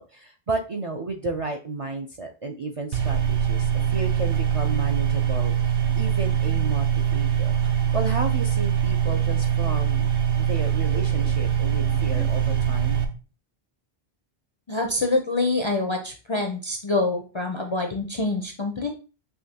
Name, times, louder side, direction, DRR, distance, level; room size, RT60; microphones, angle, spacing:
voice 1, 0.0-5.5 5.9-10.1 10.4-13.0, right 3 dB, 50° right, 2 dB, 0.4 m, -32 dB
sound 1, 2.9-13.0, right 8 dB, 65° right, 0.9 m, -23 dB
voice 2, 14.7-18.9, left 2 dB, 40° left, 3 dB, 0.4 m, -26 dB
5.7 x 3.0 x 2.7 m, 0.35 s
omnidirectional pair, 1.1 m